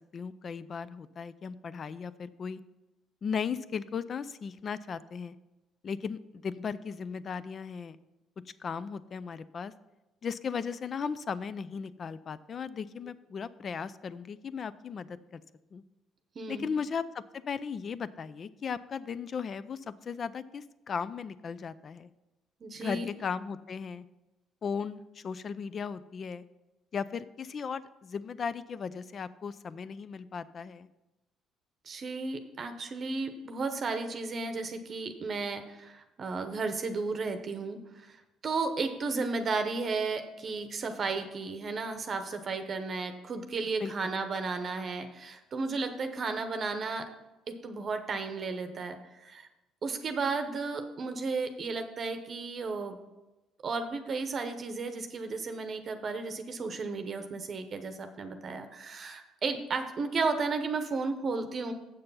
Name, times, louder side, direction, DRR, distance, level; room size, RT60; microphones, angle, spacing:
voice 1, 0.1-2.6 3.2-5.4 5.8-8.0 8.6-9.7 10.2-15.4 15.7-15.8 16.5-22.1 22.8-24.0 24.6-26.4 26.9-30.9 43.8-44.2, left 6 dB, 40° left, 16 dB, 0.4 m, -36 dB
voice 2, 16.4-16.7 22.6-23.1 31.9-47.1 47.5-49.5 49.8-53.0 53.6-61.7, right 4 dB, 40° right, 7 dB, 0.8 m, -34 dB
7.6 x 6.7 x 5.6 m, 1.0 s
cardioid pair, 105°, 0 cm